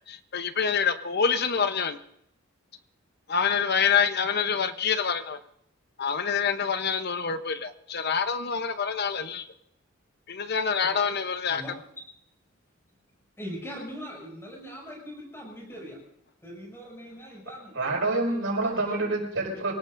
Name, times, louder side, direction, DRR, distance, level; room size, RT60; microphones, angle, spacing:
voice 1, 0.1-2.0 3.3-5.4 6.0-9.5 10.3-11.6, left 6 dB, 50° left, 10 dB, 0.9 m, -26 dB
voice 2, 13.4-16.0 16.4-18.0 18.4-19.2, equal, 15° left, -1 dB, 6.6 m, -41 dB
voice 3, 17.7-19.7, right 2 dB, 75° right, 0 dB, 5.6 m, -27 dB
27.0 x 18.0 x 2.6 m, 0.73 s
head